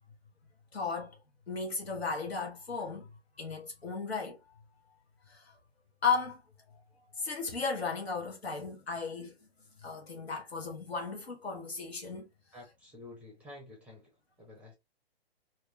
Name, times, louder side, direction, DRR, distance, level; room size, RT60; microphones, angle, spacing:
voice 1, 0.7-1.1 1.5-3.1 3.4-4.4 5.3-5.5 6.0-6.4 7.2-9.3 9.8-12.3, left 5 dB, 85° left, 1.1 m, -35 dB
voice 2, 12.5-14.0 14.4-14.7, left 2 dB, 5° right, 0.5 m, -50 dB
2.8 x 2.3 x 3.1 m
figure-of-eight pair, 120°, 31 cm